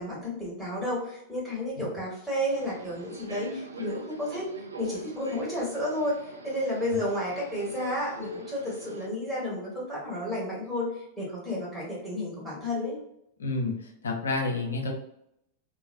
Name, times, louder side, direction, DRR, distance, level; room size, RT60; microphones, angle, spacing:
voice 1, 0.0-4.5 4.8-13.0, left 1 dB, ahead, -7 dB, 1.5 m, -32 dB
Subway metro underground, 2.5-9.1, right 1 dB, 80° right, 0.4 m, -43 dB
voice 2, 13.4-14.9, left 3 dB, 70° left, 2 dB, 0.5 m, -30 dB
3.1 x 2.2 x 2.5 m, 0.77 s
figure-of-eight pair, 90°, 0 cm